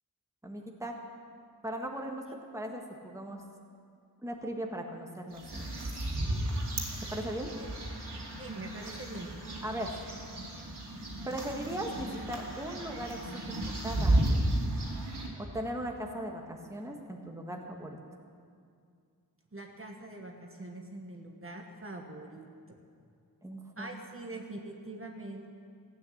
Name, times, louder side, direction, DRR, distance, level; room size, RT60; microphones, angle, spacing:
voice 1, 0.4-0.9 1.6-2.2 2.5-3.4 4.2-5.8 7.1-7.5 9.6-10.0 11.2-13.2 13.8-14.4 15.4-18.0 23.4-23.9, right 1 dB, 10° right, 1 dB, 1.4 m, -38 dB
sound 1, 5.3-15.3, right 1 dB, 90° right, 2.5 m, -33 dB
voice 2, 8.4-9.3 19.5-22.8 23.8-25.5, right 2 dB, 35° right, 1 dB, 1.3 m, -43 dB
15.0 x 9.1 x 7.8 m, 2.3 s
wide cardioid pair, 100°, 39 cm